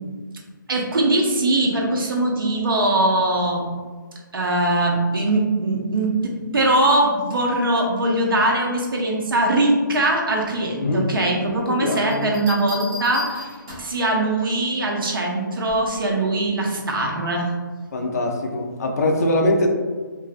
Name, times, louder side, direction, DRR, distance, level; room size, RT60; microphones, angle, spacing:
voice 1, 0.7-3.7 4.3-13.5 13.8-17.5, right 1 dB, 85° right, -1 dB, 0.6 m, -21 dB
voice 2, 11.7-12.3 17.9-19.7, left 1 dB, 50° left, 2 dB, 0.4 m, -22 dB
Bell, 12.1-14.1 15.7-16.0, left 2 dB, 15° right, 0.4 m, -35 dB
2.5 x 2.2 x 2.4 m, 1.5 s
hypercardioid pair, 165°, 11 cm